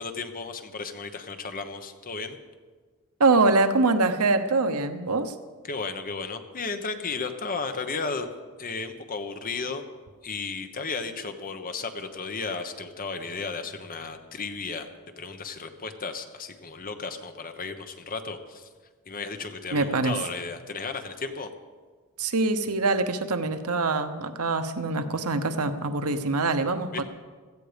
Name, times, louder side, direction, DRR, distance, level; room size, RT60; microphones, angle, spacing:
voice 1, 0.0-2.4 5.6-8.3 8.6-9.8 10.2-14.9 15.2-18.7 19.1-21.5 26.9-27.0, left 4 dB, 40° left, 7 dB, 1.1 m, -34 dB
voice 2, 3.2-5.3 19.7-20.2 22.2-27.0, right 3 dB, 75° right, 9 dB, 1.0 m, -24 dB
16.5 x 14.0 x 5.2 m, 1.5 s
head